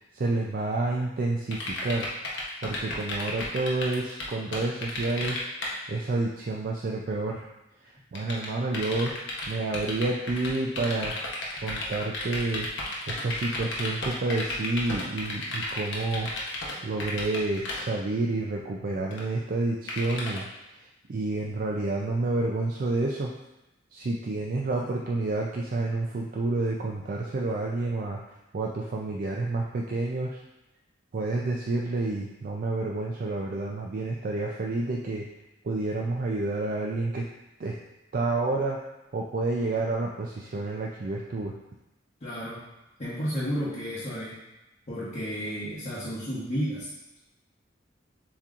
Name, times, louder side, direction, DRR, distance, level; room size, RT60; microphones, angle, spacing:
voice 1, 0.1-2.1 2.6-5.4 5.9-7.4 7.8-9.2 9.5-11.2 11.6-12.7 13.1-16.3 16.8-20.5 20.8-23.3 23.9-28.2 28.5-30.4 31.1-35.3 35.6-37.3 37.6-37.8 38.1-38.8 39.1-41.5, right 2 dB, 45° right, -1 dB, 0.4 m, -29 dB
sound 1, 1.5-5.7 8.1-16.7 17.0-17.8 19.1-19.2 19.9-20.4, left 2 dB, 65° left, 0.9 m, -33 dB
voice 2, 42.2-42.7 43.0-44.4 44.9-46.9, equal, 40° left, -10 dB, 1.0 m, -32 dB
7.2 x 2.9 x 2.5 m, 0.97 s
head